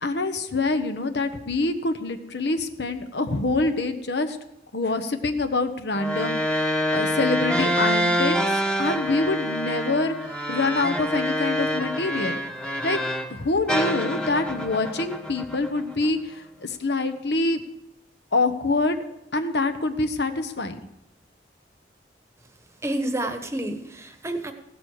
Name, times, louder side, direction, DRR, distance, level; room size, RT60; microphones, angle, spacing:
voice 1, 0.0-4.4 4.7-6.6 6.9-8.4 8.8-12.4 12.8-13.0 13.3-17.6 18.3-19.0 19.3-20.8, left 3 dB, 70° left, 8 dB, 1.1 m, -25 dB
sound 1, 5.9-13.3 13.7-16.1, equal, 5° left, 1.1 m, -26 dB
voice 2, 22.8-24.5, right 1 dB, 15° right, 7 dB, 1.1 m, -29 dB
15.5 x 12.0 x 4.9 m, 0.84 s
head